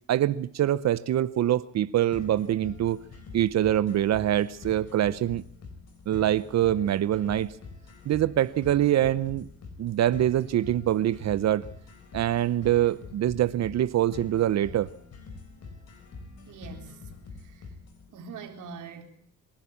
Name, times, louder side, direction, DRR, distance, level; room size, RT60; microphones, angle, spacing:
voice 1, 0.1-3.0 3.3-5.4 6.1-7.5 8.1-9.5 9.8-11.6 12.1-14.9, right 12 dB, 60° right, 0.7 m, -24 dB
sound 1, 2.1-18.1, left 4 dB, 55° left, 5.1 m, -45 dB
voice 2, 16.5-17.0 17.4-17.6 18.1-19.0, right 5 dB, 80° right, 4.1 m, -42 dB
26.0 x 11.5 x 8.6 m
cardioid pair, 90°, 30 cm